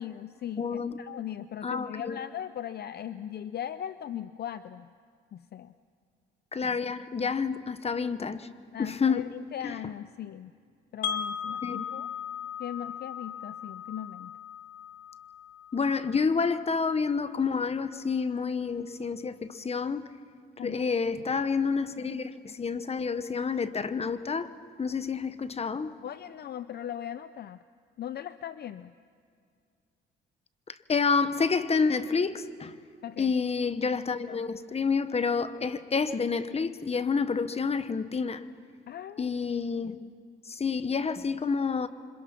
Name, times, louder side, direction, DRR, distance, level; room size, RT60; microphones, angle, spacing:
voice 1, 0.0-4.9 5.3-5.7 8.7-10.5 10.9-12.1 12.6-14.3 20.6-20.9 26.0-27.6 28.0-28.9 33.0-33.3 38.9-39.3 39.8-40.0, left 10 dB, 55° left, 0.6 m, -39 dB
voice 2, 0.6-1.0 1.6-2.2 6.5-8.5 8.8-9.3 9.6-9.8 11.6-11.8 15.7-20.1 20.6-24.5 24.8-26.0 30.7-32.8 33.2-38.5 39.2-40.0 40.5-41.9, left 5 dB, 30° left, 1.1 m, -29 dB
Wind chime, 11.0-17.0, left 8 dB, 85° left, 1.2 m, -38 dB
27.5 x 26.0 x 5.9 m
cardioid pair, 90°, 20 cm